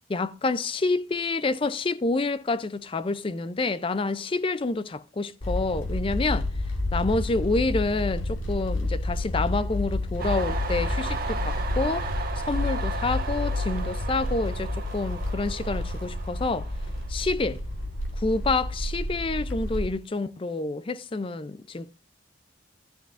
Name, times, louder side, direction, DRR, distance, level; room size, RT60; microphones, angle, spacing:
voice 1, 0.1-6.5 6.9-12.1 12.4-16.7 17.1-17.6 18.2-21.9, left 3 dB, 25° left, 0.4 m, -28 dB
sound 1, 5.4-19.9, left 1 dB, 85° left, 1.8 m, -30 dB
Train, 10.2-17.6 18.0-18.8, right 4 dB, 45° right, 1.3 m, -36 dB
13.0 x 10.0 x 2.5 m
head